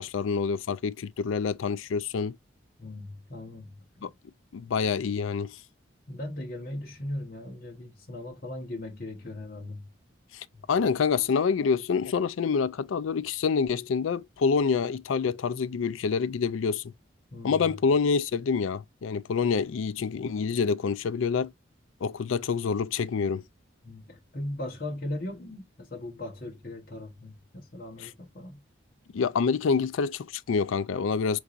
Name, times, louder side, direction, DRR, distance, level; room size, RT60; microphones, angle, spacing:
voice 1, 0.0-2.4 4.0-4.1 4.5-5.6 10.3-16.8 17.4-21.5 22.0-23.4 29.1-31.4, left 5 dB, 85° left, 0.4 m, -27 dB
voice 2, 2.8-4.1 6.1-9.9 10.5-10.6 17.3-17.7 23.8-28.6, left 1 dB, 45° left, 1.0 m, -38 dB
4.6 x 4.0 x 2.4 m
head